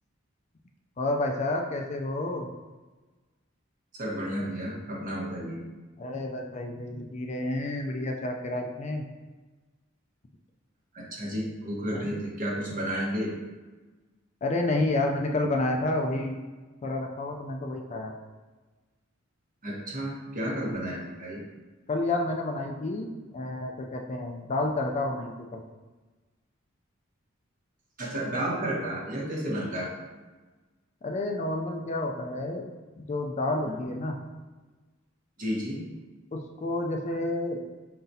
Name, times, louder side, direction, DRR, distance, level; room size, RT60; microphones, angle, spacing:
voice 1, 1.0-2.5 6.0-9.0 11.9-12.1 14.4-16.4 16.8-18.2 21.9-25.6 29.4-29.6 31.0-32.7 33.0-34.2 36.3-37.6, left 2 dB, 35° left, 2 dB, 0.4 m, -30 dB
voice 2, 3.9-5.6 10.9-13.4 19.6-21.4 28.0-29.9 33.7-33.8 35.4-35.8, equal, 40° right, -3 dB, 1.1 m, -32 dB
4.6 x 3.9 x 2.7 m, 1.3 s
head